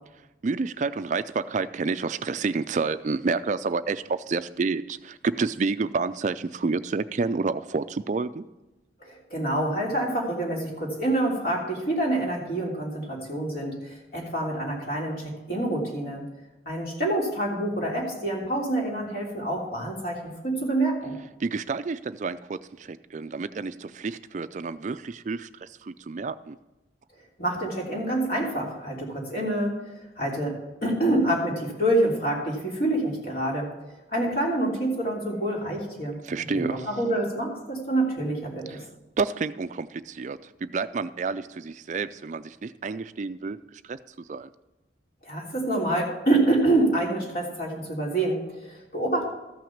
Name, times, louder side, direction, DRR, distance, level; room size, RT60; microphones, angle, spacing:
voice 1, 0.4-8.5 21.4-26.6 36.2-36.9 38.7-38.9 39.2-44.5, right 4 dB, 40° right, 13 dB, 0.4 m, -29 dB
voice 2, 9.0-16.2 16.6-21.2 27.4-38.8 45.2-49.3, right 1 dB, 55° left, -2 dB, 3.3 m, -27 dB
14.0 x 6.0 x 7.2 m, 1.0 s
head